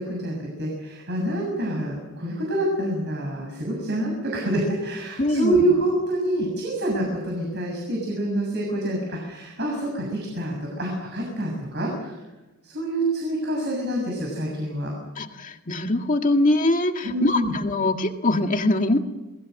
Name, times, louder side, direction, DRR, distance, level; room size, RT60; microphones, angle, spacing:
voice 1, 0.0-12.2 12.6-14.9 17.0-17.5, right 1 dB, 50° right, 0 dB, 7.0 m, -26 dB
voice 2, 5.2-5.6 15.2-19.0, left 2 dB, 35° left, 5 dB, 2.0 m, -22 dB
29.0 x 20.0 x 6.6 m, 1.1 s
head